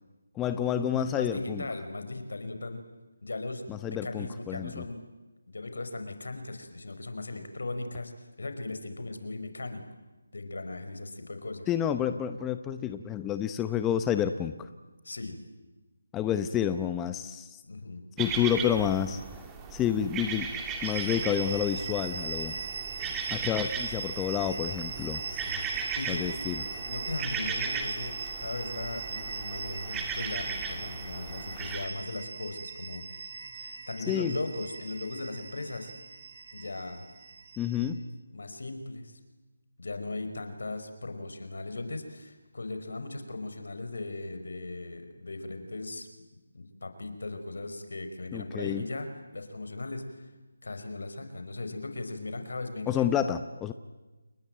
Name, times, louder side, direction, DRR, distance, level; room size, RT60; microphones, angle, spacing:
voice 1, 0.3-1.6 3.7-4.8 11.7-14.7 16.1-17.6 18.2-19.2 19.7-20.5 20.8-22.5 23.3-25.2 26.1-26.6 34.0-34.3 37.6-38.0 48.3-48.9 52.9-53.7, left 9 dB, 10° left, 10 dB, 0.8 m, -29 dB
voice 2, 0.9-2.9 3.2-5.0 5.5-8.1 8.4-9.8 10.3-11.7 15.0-15.4 17.6-18.0 23.0-23.5 25.3-26.3 26.9-33.2 33.5-35.9 36.5-37.0 38.3-39.2 39.8-46.1 46.5-50.3 50.6-53.1, left 2 dB, 75° left, 7 dB, 5.1 m, -38 dB
sound 1, 18.2-31.9, right 5 dB, 10° right, 2.6 m, -37 dB
sound 2, 20.8-37.9, right 5 dB, 45° right, 5.0 m, -39 dB
29.5 x 21.0 x 9.0 m, 1.1 s
figure-of-eight pair, 160°, 0 cm